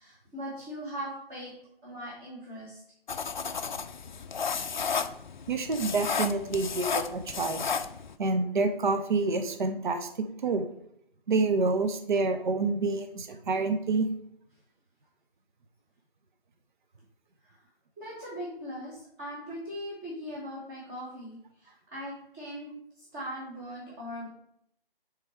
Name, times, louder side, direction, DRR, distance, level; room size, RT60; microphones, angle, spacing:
voice 1, 0.0-1.5 1.8-2.8 17.5-17.6 18.0-22.7 23.0-24.3, equal, 15° right, -7 dB, 1.2 m, -40 dB
sound 1, 3.1-8.1, left 6 dB, 50° left, 0.4 m, -33 dB
voice 2, 5.5-7.7 8.2-10.6 11.3-14.1, right 3 dB, 55° right, 7 dB, 0.6 m, -28 dB
6.2 x 3.7 x 4.3 m, 0.72 s
figure-of-eight pair, 150°, 30 cm